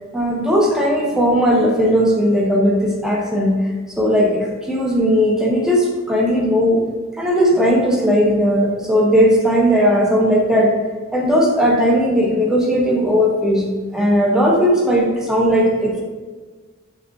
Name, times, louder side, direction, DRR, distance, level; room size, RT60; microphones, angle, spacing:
voice 1, 0.1-3.5 4.0-6.8 7.2-10.7 11.1-13.6 13.9-16.0, equal, 5° right, -2 dB, 0.4 m, -17 dB
3.6 x 2.2 x 2.4 m, 1.4 s
head